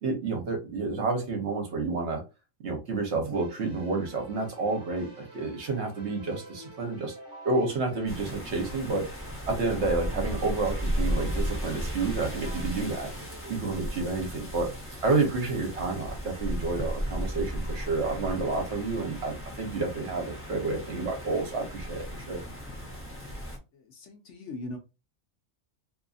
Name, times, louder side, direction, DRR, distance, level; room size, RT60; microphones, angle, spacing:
voice 1, 0.0-2.2 2.6-7.2 7.4-9.0 9.5-13.1 13.5-14.7 15.0-22.4, right 3 dB, 60° right, 1.0 m, -30 dB
Keyboard (musical), 3.3-13.9, right 1 dB, 25° right, 0.9 m, -48 dB
sound 1, 8.1-23.6, equal, 15° left, 0.5 m, -35 dB
voice 2, 23.7-24.8, left 2 dB, 65° left, 1.0 m, -40 dB
2.7 x 2.5 x 2.3 m
omnidirectional pair, 1.4 m